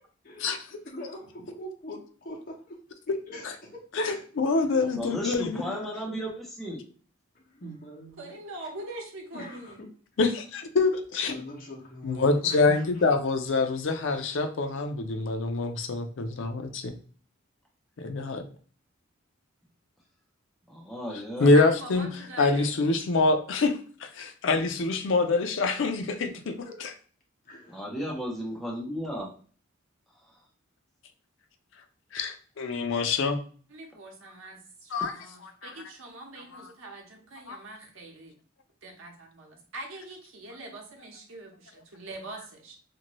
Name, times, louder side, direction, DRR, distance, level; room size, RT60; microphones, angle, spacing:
voice 1, 0.8-2.7 3.3-4.2 4.5-4.9 5.6-5.9 7.5-8.3 9.3-9.9 11.3-13.1 26.3-26.4 27.4-27.9, equal, 45° left, -2 dB, 0.9 m, -42 dB
voice 2, 4.0-5.7 10.2-11.3 12.0-16.9 18.0-18.4 21.4-22.1 22.4-23.7 24.1-26.3 32.1-33.4 34.9-35.1 35.6-35.7 36.5-36.6 37.5-37.6, left 3 dB, 70° left, 7 dB, 0.4 m, -25 dB
voice 3, 5.0-6.8 20.7-21.5 27.7-29.3, equal, ahead, -4 dB, 0.8 m, -34 dB
voice 4, 8.2-9.8 21.5-22.7 33.7-38.4 38.8-42.7, right 2 dB, 80° right, 1 dB, 0.8 m, -43 dB
2.6 x 2.5 x 3.0 m, 0.42 s
head